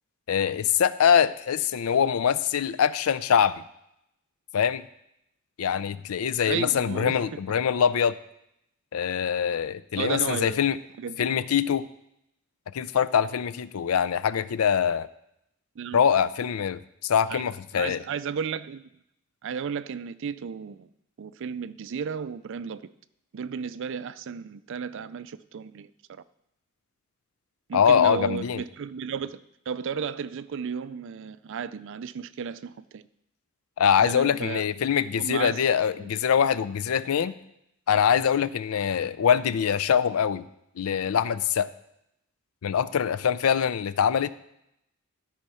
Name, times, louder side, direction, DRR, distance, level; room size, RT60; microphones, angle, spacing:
voice 1, 0.3-3.6 4.5-4.9 5.6-8.2 8.9-10.8 11.2-11.9 12.7-15.1 15.9-18.0 27.7-28.6 33.8-37.4 37.9-40.5 40.8-41.7 42.6-44.3, left 8 dB, 85° left, 15 dB, 0.4 m, -23 dB
voice 2, 6.5-7.2 10.0-10.6 11.0-11.3 15.8-16.0 17.3-17.4 17.7-18.9 19.4-20.9 21.2-22.9 23.3-26.2 27.7-33.0 34.0-34.6 35.2-35.6 35.9-36.1, right 6 dB, 60° right, 15 dB, 0.4 m, -34 dB
13.0 x 4.6 x 5.5 m, 0.81 s
head